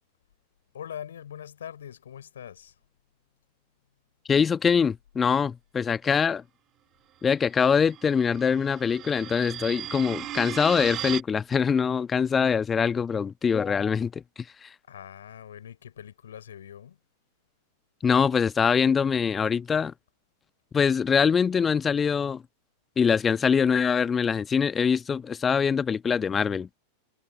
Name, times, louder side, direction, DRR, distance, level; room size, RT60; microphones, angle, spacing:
voice 1, 0.7-2.8 10.2-10.7 14.9-17.0, left 9 dB, 65° left, 4.9 m, -43 dB
voice 2, 4.3-6.4 7.2-14.7 18.0-19.9 20.7-22.4 23.0-26.7, left 6 dB, 20° left, 1.3 m, -24 dB
sound 1, 7.6-11.2, right 13 dB, 30° right, 2.3 m, -37 dB
figure-of-eight pair, 90°, 0 cm